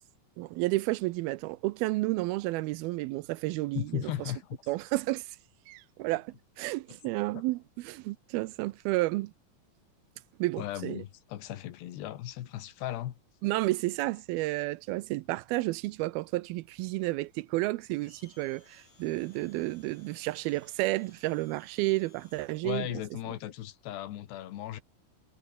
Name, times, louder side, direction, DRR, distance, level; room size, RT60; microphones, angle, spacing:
voice 1, 0.4-4.0 4.7-5.4 5.7-9.3 10.4-11.0 13.4-22.9, right 19 dB, 80° right, 2.3 m, -31 dB
voice 2, 3.7-4.6 6.9-7.0 10.6-13.2 22.6-24.8, left 13 dB, 80° left, 3.7 m, -36 dB
Domestic sounds home sounds, 17.9-23.0, left 4 dB, 40° left, 6.4 m, -63 dB
omnidirectional pair, 4.8 m